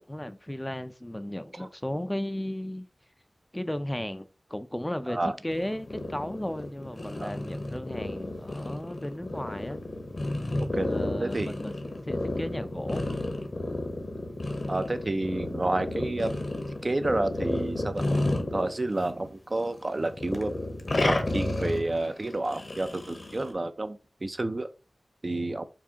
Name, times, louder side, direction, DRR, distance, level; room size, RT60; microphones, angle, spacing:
voice 1, 0.0-2.9 3.5-5.2 5.4-9.8 10.8-11.7 12.0-13.0, left 1 dB, 15° left, 0.4 m, -35 dB
sound 1, 5.5-19.3 19.6-23.5, left 2 dB, 60° left, 0.8 m, -32 dB
voice 2, 11.2-11.6 14.7-16.4 16.8-18.0 18.5-20.5 21.1-24.7 25.2-25.7, right 2 dB, 45° right, 0.5 m, -30 dB
4.7 x 2.6 x 2.8 m
cardioid pair, 45°, 0 cm